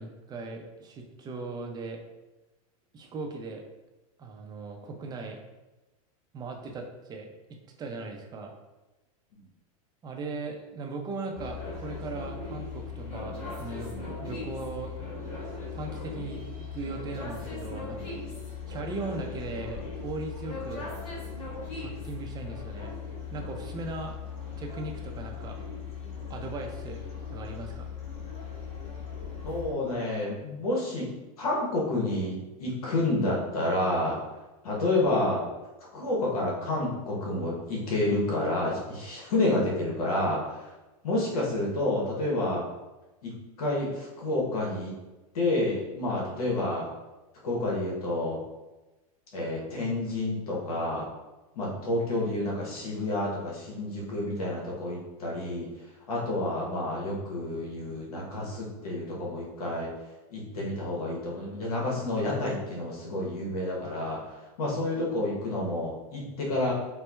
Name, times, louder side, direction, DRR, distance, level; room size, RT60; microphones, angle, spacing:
voice 1, 0.0-2.0 2.9-3.6 4.2-5.4 6.3-7.3 7.8-8.5 10.0-14.9 15.7-18.1 18.7-20.9 21.8-23.0 23.3-24.2 24.6-25.6 26.3-27.0 27.3-27.9, right 3 dB, 20° right, 2 dB, 0.5 m, -38 dB
sound 1, 11.3-29.7, left 5 dB, 30° left, 1.5 m, -38 dB
voice 2, 29.4-31.1 31.4-34.2 34.6-35.5 35.9-40.7 41.0-42.6 43.2-44.9 45.3-46.9 47.4-48.4 49.3-51.1 51.5-59.9 60.3-66.7, left 2 dB, 85° left, -4 dB, 0.9 m, -29 dB
4.3 x 2.0 x 2.3 m, 1.1 s
supercardioid pair, 125°, 19 cm